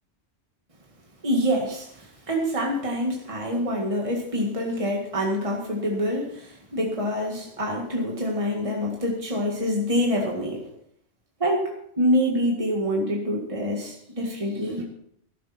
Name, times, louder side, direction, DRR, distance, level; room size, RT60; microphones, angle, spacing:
voice 1, 1.2-10.6 11.4-11.7 12.0-14.8, equal, 25° right, -1 dB, 2.0 m, -26 dB
13.5 x 11.0 x 4.3 m, 0.69 s
omnidirectional pair, 1.2 m